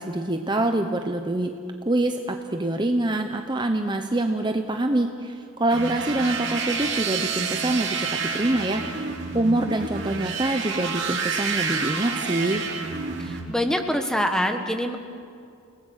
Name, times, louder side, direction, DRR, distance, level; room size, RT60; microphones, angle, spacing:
voice 1, 0.0-1.5 1.8-8.1 8.3-9.1 9.3-12.6, right 1 dB, 20° right, 5 dB, 0.9 m, -25 dB
sound 1, 5.7-13.4, right 5 dB, 55° right, 3.4 m, -29 dB
voice 2, 13.2-15.0, equal, 5° left, 5 dB, 1.5 m, -25 dB
30.0 x 19.5 x 6.5 m, 2.5 s
head